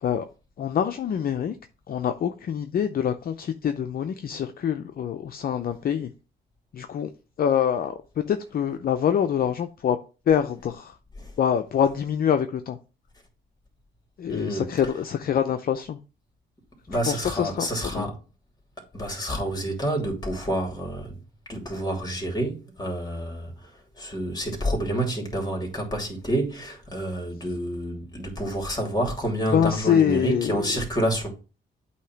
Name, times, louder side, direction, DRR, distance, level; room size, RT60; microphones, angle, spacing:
voice 1, 0.6-1.6 1.9-6.1 6.7-7.1 7.4-10.0 10.3-10.9 11.4-12.8 14.2-16.0 17.1-18.1 29.5-30.6, left 8 dB, 50° left, 0.6 m, -25 dB
voice 2, 14.3-14.7 16.9-18.2 18.9-21.2 21.5-31.3, right 1 dB, 20° left, 2.8 m, -28 dB
8.3 x 2.9 x 5.8 m
cardioid pair, 90°, 20 cm